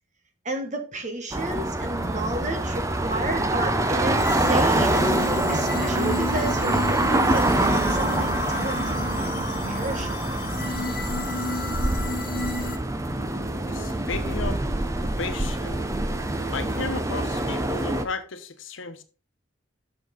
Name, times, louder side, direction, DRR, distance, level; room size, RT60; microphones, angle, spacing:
voice 1, 0.4-5.0 5.5-7.5 7.9-9.4 9.7-10.9, right 2 dB, 40° right, 5 dB, 1.4 m, -32 dB
sound 1, 1.3-18.0, right 1 dB, 15° right, 0.6 m, -25 dB
sound 2, 4.1-12.8, left 2 dB, 45° left, 1.1 m, -32 dB
voice 2, 13.7-14.6 15.2-15.9 16.5-19.0, left 4 dB, 85° left, 9 dB, 1.0 m, -34 dB
7.5 x 6.4 x 4.0 m, 0.35 s
head